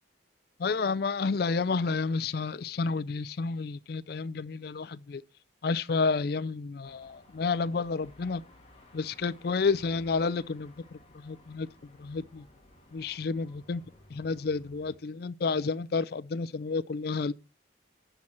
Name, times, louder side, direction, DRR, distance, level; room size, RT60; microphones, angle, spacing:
voice 1, 0.6-5.2 5.6-8.4 8.9-11.7 12.0-12.5 12.9-13.8 14.1-17.3, left 4 dB, 55° left, 0.4 m, -30 dB
Car passing by / Traffic noise roadway noise / Engine, 6.8-15.0, left 1 dB, 30° left, 1.9 m, -57 dB
12.0 x 4.3 x 6.0 m
head